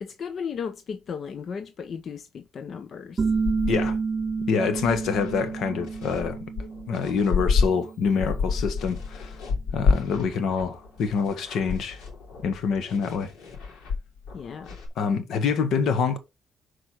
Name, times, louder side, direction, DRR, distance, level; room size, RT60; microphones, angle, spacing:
voice 1, 0.0-3.2 14.3-14.8, left 6 dB, 55° left, 0.8 m, -35 dB
sound 1, 3.2-8.6, right 5 dB, 35° right, 0.4 m, -30 dB
sound 2, 3.3-7.6 8.0-14.9, left 5 dB, 90° left, 3.0 m, -30 dB
voice 2, 3.7-4.0 4.5-6.4 6.9-9.4 9.7-12.0 12.4-13.3 15.0-16.2, left 5 dB, 75° left, 1.5 m, -26 dB
6.4 x 4.8 x 6.1 m
cardioid pair, 90°, 0 cm